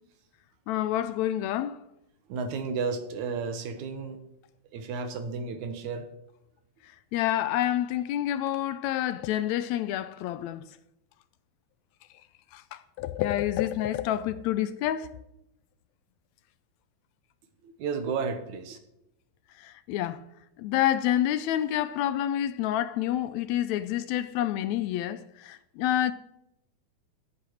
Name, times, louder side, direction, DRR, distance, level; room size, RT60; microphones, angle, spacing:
voice 1, 0.7-1.8 7.1-10.6 12.5-15.1 19.6-20.2 20.6-26.1, left 12 dB, 80° left, 1.8 m, -28 dB
voice 2, 2.3-4.2 4.7-6.1 17.6-18.8, right 5 dB, 75° right, 2.6 m, -32 dB
10.5 x 8.7 x 6.4 m
omnidirectional pair, 3.4 m